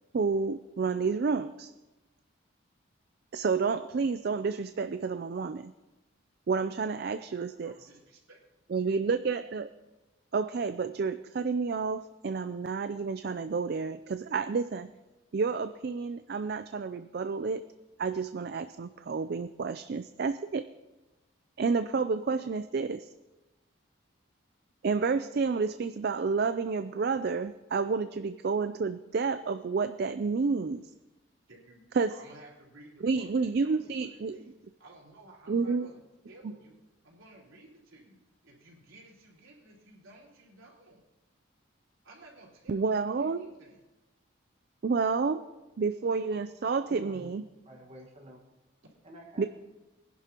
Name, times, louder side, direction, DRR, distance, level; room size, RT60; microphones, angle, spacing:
voice 1, 0.1-1.7 3.3-5.7 6.5-7.7 8.7-9.7 10.3-14.9 15.3-17.7 18.0-20.6 21.6-23.1 24.8-30.9 31.9-32.2 33.0-34.4 35.5-35.9 42.7-43.5 44.8-45.4 45.8-47.4 49.4-49.5, right 4 dB, 50° right, 11 dB, 0.4 m, -30 dB
voice 2, 7.0-8.4 31.5-34.5 34.8-41.0 42.0-43.8 48.8-48.9, right 2 dB, 80° right, -4 dB, 4.1 m, -55 dB
voice 3, 46.6-47.3 47.6-48.4 49.0-49.5, equal, 30° right, 0 dB, 1.5 m, -50 dB
22.5 x 11.0 x 2.9 m, 1.1 s
head